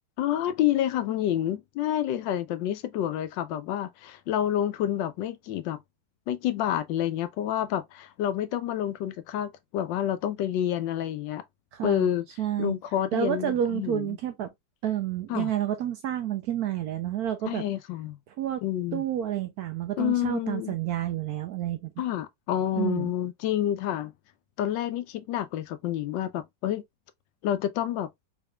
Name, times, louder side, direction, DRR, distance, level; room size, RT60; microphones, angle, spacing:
voice 1, 0.2-5.8 6.3-11.4 11.8-12.2 12.6-14.1 15.3-15.5 17.5-18.2 18.6-19.0 20.0-20.7 22.0-24.1 24.6-26.8 27.4-28.1, left 11 dB, 80° left, 1.3 m, -28 dB
voice 2, 11.7-12.1 12.4-12.7 13.1-14.5 14.8-17.6 18.3-18.6 18.9-22.0 22.8-23.1, right 11 dB, 70° right, 0.9 m, -29 dB
4.0 x 3.6 x 2.2 m
omnidirectional pair, 2.0 m